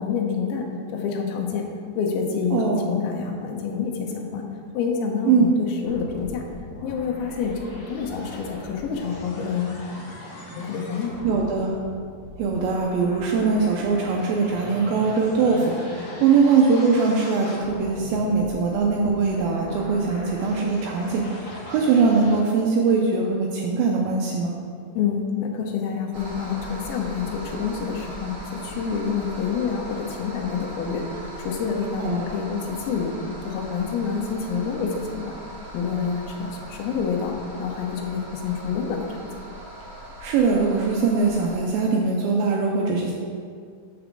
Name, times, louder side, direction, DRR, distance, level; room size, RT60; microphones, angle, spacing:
voice 1, 0.0-1.7 1.9-4.4 4.7-6.4 6.8-7.6 7.9-9.8 10.6-11.2 25.0-33.1 33.5-35.3 35.7-37.3 37.6-39.2, left 6 dB, 75° left, 1 dB, 2.6 m, -27 dB
voice 2, 2.5-2.9 5.3-5.5 11.2-11.8 12.4-24.5 32.0-32.4 40.2-43.1, right 4 dB, 80° right, 0 dB, 2.3 m, -21 dB
sound 1, 5.8-22.4, left 2 dB, 55° left, 2.3 m, -39 dB
sound 2, 26.1-41.6, right 1 dB, 50° right, 1.7 m, -40 dB
5.9 x 4.8 x 6.6 m, 2.2 s
omnidirectional pair, 4.6 m